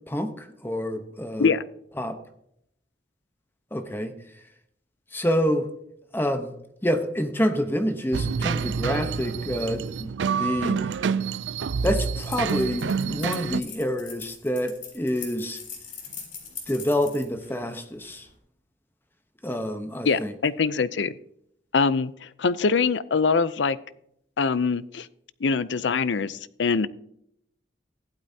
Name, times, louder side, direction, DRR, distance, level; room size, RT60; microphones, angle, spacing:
voice 1, 0.1-1.5 2.0-2.2 3.7-4.1 5.1-5.7 6.1-6.5 6.8-10.8 11.8-15.6 16.7-18.3 19.4-20.3, equal, 10° left, 7 dB, 1.0 m, -27 dB
sound 1, 8.1-13.6, right 6 dB, 85° right, 0.4 m, -27 dB
sound 2, 12.0-18.3, left 6 dB, 45° left, 3.6 m, -41 dB
voice 2, 20.0-21.1 21.7-23.8 24.4-25.1 25.4-26.9, left 5 dB, 80° left, 17 dB, 0.6 m, -23 dB
15.5 x 12.0 x 2.8 m, 0.74 s
head